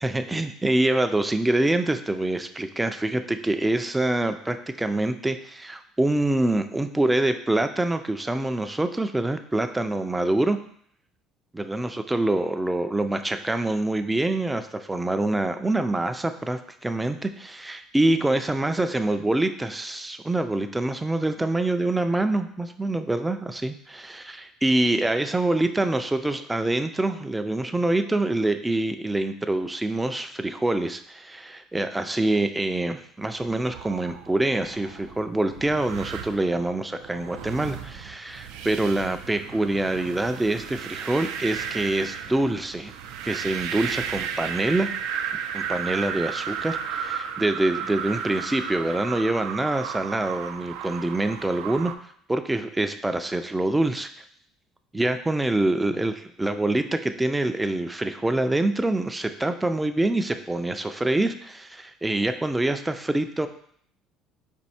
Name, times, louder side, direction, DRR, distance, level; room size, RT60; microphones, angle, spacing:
voice 1, 0.0-10.6 11.5-42.9 43.2-44.9 45.5-54.2 54.9-63.5, right 2 dB, 10° right, 8 dB, 0.3 m, -25 dB
sound 1, 33.4-51.9, right 7 dB, 85° right, 0.4 m, -34 dB
4.4 x 2.7 x 4.1 m, 0.62 s
cardioid pair, 120°, 0 cm